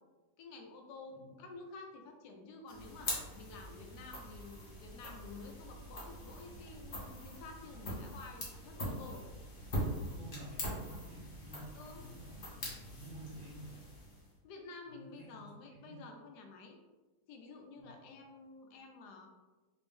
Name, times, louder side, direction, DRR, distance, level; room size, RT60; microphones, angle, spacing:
voice 1, 0.4-9.2 11.7-12.0 14.4-16.8 17.3-19.3, left 3 dB, 80° left, 3 dB, 1.2 m, -51 dB
sound 1, 2.7-14.4, equal, 40° left, 1.0 m, -43 dB
voice 2, 10.0-13.9 14.9-15.4 15.7-16.0 17.8-18.0, right 1 dB, 85° right, -7 dB, 1.4 m, -51 dB
3.4 x 2.6 x 3.5 m, 1.2 s
omnidirectional pair, 1.8 m